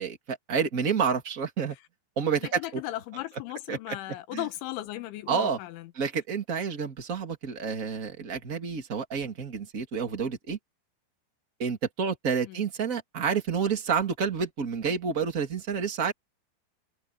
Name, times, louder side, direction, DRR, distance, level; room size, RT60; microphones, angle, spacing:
voice 1, 0.0-1.8 2.2-2.8 3.7-4.0 4.3-4.5 5.3-5.6 5.9-10.6 11.6-16.1, right 6 dB, 25° right, 2.0 m, -29 dB
voice 2, 2.4-5.9 12.5-12.6, left 16 dB, 85° left, 3.5 m, -36 dB
open air
omnidirectional pair, 5.4 m